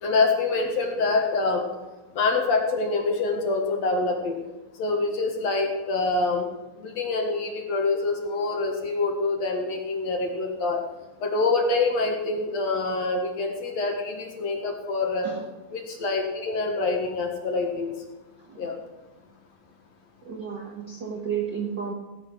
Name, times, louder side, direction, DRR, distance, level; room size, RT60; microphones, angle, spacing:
voice 1, 0.0-1.7 2.1-4.4 4.8-6.5 6.8-10.8 11.2-15.3 15.7-17.9 18.6-18.7, left 3 dB, 55° left, 2 dB, 2.3 m, -25 dB
voice 2, 20.2-21.9, right 7 dB, 75° right, 0 dB, 1.0 m, -31 dB
17.5 x 8.2 x 6.1 m, 1.1 s
omnidirectional pair, 4.2 m